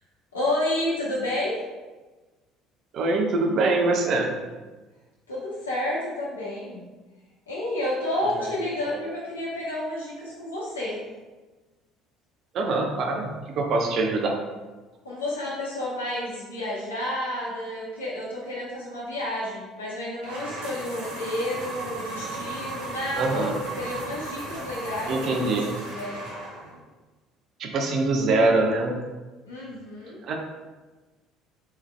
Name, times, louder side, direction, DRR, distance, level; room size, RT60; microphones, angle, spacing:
voice 1, 0.3-1.6 5.3-6.8 7.5-11.0 15.0-25.6 25.8-26.2 29.4-30.2, left 1 dB, 85° left, -6 dB, 0.8 m, -30 dB
voice 2, 2.9-4.3 8.4-8.5 8.9-9.0 12.5-14.4 23.1-23.6 25.1-25.7 27.6-28.9 30.2-30.3, right 2 dB, 55° right, 2 dB, 0.7 m, -24 dB
sound 1, 20.2-26.8, right 2 dB, 70° right, 1.1 m, -36 dB
3.5 x 3.2 x 3.3 m, 1.2 s
figure-of-eight pair, 60°, 0 cm